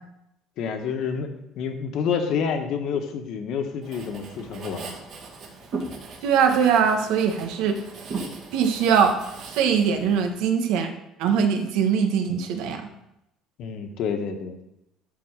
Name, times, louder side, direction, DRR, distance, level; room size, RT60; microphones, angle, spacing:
voice 1, 0.6-1.3 1.6-4.9 13.6-14.5, left 6 dB, 55° left, 6 dB, 1.2 m, -28 dB
Writing, 3.8-10.3, right 3 dB, 45° right, 2.1 m, -38 dB
voice 2, 6.2-7.8 8.5-10.9 11.2-12.9, right 7 dB, 85° right, 5 dB, 1.3 m, -22 dB
12.5 x 4.2 x 6.5 m, 0.86 s
cardioid pair, 165°, 0 cm